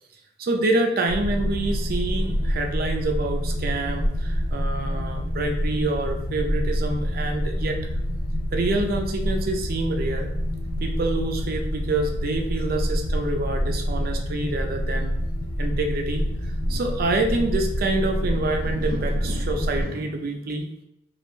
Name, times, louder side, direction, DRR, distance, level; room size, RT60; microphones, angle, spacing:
voice 1, 0.4-7.8 8.5-10.3 10.8-15.1 15.6-20.7, right 2 dB, 50° right, 3 dB, 0.4 m, -27 dB
sound 1, 1.1-19.8, equal, 25° left, 0.7 m, -27 dB
2.3 x 2.1 x 3.0 m, 0.80 s
head